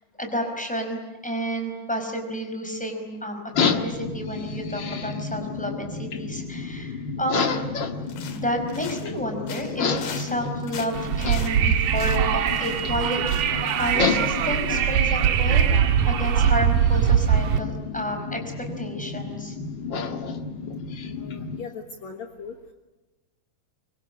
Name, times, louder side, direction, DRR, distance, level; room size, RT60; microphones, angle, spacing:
voice 1, 0.2-8.0 8.3-15.7 16.0-19.6, equal, ahead, 4 dB, 4.7 m, -31 dB
sound 1, 3.5-21.6, left 5 dB, 45° left, 1.7 m, -31 dB
sound 2, 8.1-9.2 9.5-13.0 13.3-13.6 13.8-13.9, left 7 dB, 80° left, 3.7 m, -40 dB
Wind, 10.9-17.6, right 8 dB, 80° right, 2.8 m, -22 dB
voice 2, 21.0-22.6, left 5 dB, 60° left, 4 dB, 2.6 m, -39 dB
25.0 x 24.0 x 9.8 m, 1.1 s
omnidirectional pair, 3.8 m